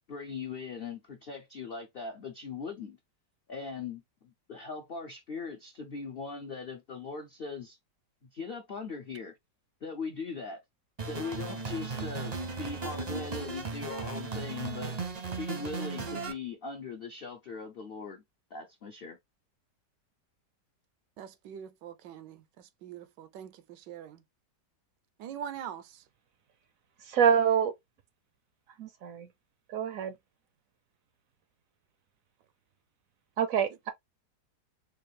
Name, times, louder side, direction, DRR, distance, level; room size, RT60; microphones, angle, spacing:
voice 1, 0.0-3.0 3.5-7.8 8.2-9.3 9.8-10.6 11.1-18.2 18.5-19.2, left 4 dB, 70° left, 0.5 m, -40 dB
sound 1, 11.0-16.3, right 4 dB, 40° right, 0.5 m, -36 dB
voice 2, 21.2-24.2 25.2-26.0, right 9 dB, 85° right, 1.3 m, -43 dB
voice 3, 27.1-27.7 28.8-29.3 29.7-30.1 33.4-33.9, right 7 dB, 70° right, 0.8 m, -26 dB
4.5 x 2.4 x 3.2 m
omnidirectional pair, 1.9 m